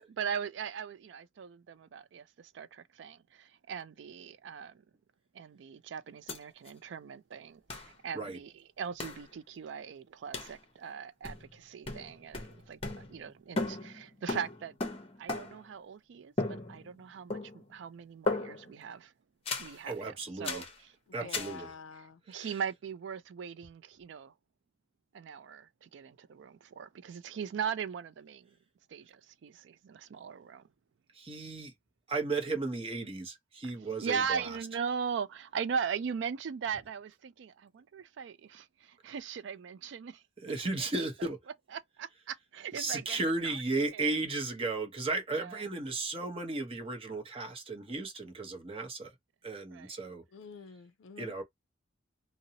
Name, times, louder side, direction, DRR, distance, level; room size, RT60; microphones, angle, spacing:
voice 1, 0.1-4.8 5.3-14.8 15.2-19.1 19.6-21.5 22.3-24.3 25.1-28.5 28.9-30.6 34.0-40.2 40.8-41.3 41.7-44.1 45.3-45.6 49.7-50.0, right 6 dB, 65° right, 0.3 m, -39 dB
sound 1, 6.3-6.4 6.7-6.8 7.7-7.9 9.0-9.3 10.3-10.6 11.2-11.6 11.9-13.3 13.6-15.7 16.4-17.0 17.3-17.8 18.3-18.8 19.5-19.8 20.4-20.8 21.3-21.6, left 2 dB, 30° left, 0.7 m, -36 dB
voice 2, 19.9-20.6 21.1-21.7 22.3-22.5 31.2-31.7 32.1-34.4 40.4-41.4 42.7-49.1 49.4-50.2 51.2-51.4, right 3 dB, 30° right, 0.7 m, -35 dB
voice 3, 21.1-22.2 50.3-51.3, left 5 dB, 80° left, 0.4 m, -48 dB
2.6 x 2.0 x 2.7 m
head